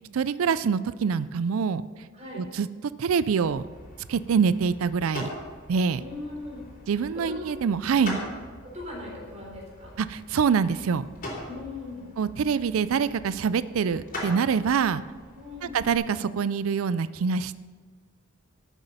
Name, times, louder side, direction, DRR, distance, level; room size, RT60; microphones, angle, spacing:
voice 1, 0.0-1.8 2.3-2.7 3.0-3.6 4.1-5.3 5.7-6.0 6.9-8.2 10.0-11.1 12.2-15.0 15.6-17.6, right 6 dB, 90° right, 16 dB, 0.4 m, -25 dB
sound 1, 3.4-16.0, left 1 dB, 45° left, 3.7 m, -42 dB
voice 2, 6.0-6.6 7.1-7.4 7.9-8.2 8.7-9.9 11.5-12.1 15.3-15.8, left 2 dB, 35° right, -2 dB, 3.8 m, -39 dB
12.0 x 8.2 x 5.5 m, 1.5 s
head